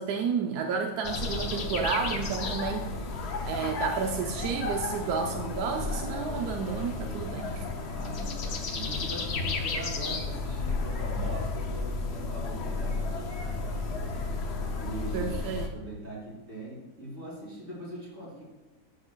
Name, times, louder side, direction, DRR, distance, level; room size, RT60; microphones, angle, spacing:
voice 1, 0.0-2.9 3.4-7.7 15.1-15.7, right 6 dB, 90° right, 3 dB, 1.1 m, -31 dB
sound 1, 1.0-15.7, left 3 dB, 50° left, 0.9 m, -33 dB
voice 2, 7.9-13.5 13.8-14.3 14.8-15.3 15.7-18.5, right 1 dB, 50° right, -4 dB, 3.1 m, -41 dB
12.0 x 6.5 x 2.2 m, 1.1 s
omnidirectional pair, 1.6 m